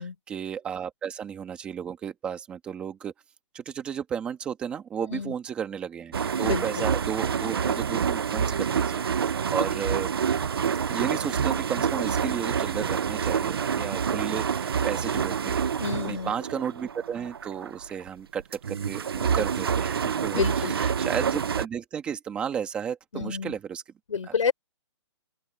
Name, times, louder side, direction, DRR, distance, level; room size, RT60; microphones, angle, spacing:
voice 1, 0.0-3.1 3.5-10.1 10.9-15.7 16.1-23.8, right 8 dB, 5° right, 1.5 m, -33 dB
sound 1, 6.1-18.1 18.4-21.7, right 7 dB, 50° right, 0.8 m, -27 dB
voice 2, 6.4-6.9 15.8-16.3 20.3-20.9 23.1-23.5 24.1-24.5, left 6 dB, 85° left, 4.3 m, -29 dB
open air
hypercardioid pair, 180°, 16 cm